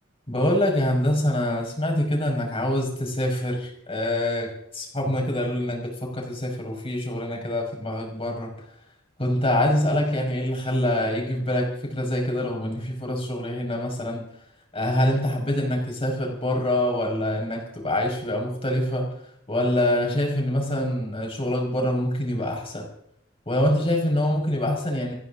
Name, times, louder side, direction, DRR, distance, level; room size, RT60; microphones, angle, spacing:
voice 1, 0.3-8.5 9.2-14.2 14.7-19.1 19.5-22.9 23.5-25.1, left 1 dB, 25° left, 0 dB, 5.5 m, -25 dB
28.5 x 11.0 x 3.8 m, 0.74 s
head